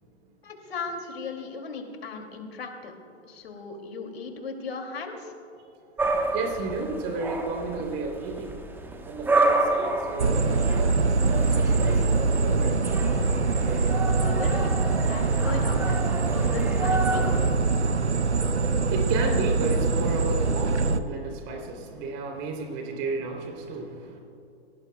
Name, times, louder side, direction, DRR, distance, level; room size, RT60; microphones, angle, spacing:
voice 1, 0.4-2.9 3.3-5.3 14.2-14.8 15.1-16.0 16.3-17.2, left 4 dB, 65° left, 4 dB, 2.7 m, -37 dB
sound 1, 6.0-17.5, right 2 dB, 5° right, 1.1 m, -30 dB
voice 2, 6.3-8.5 9.1-12.8 18.8-24.2, right 3 dB, 35° right, 2 dB, 3.3 m, -32 dB
sound 2, 10.2-21.0, right 3 dB, 85° right, 0.8 m, -23 dB
29.0 x 18.0 x 2.3 m, 2.7 s
figure-of-eight pair, 120°, 33 cm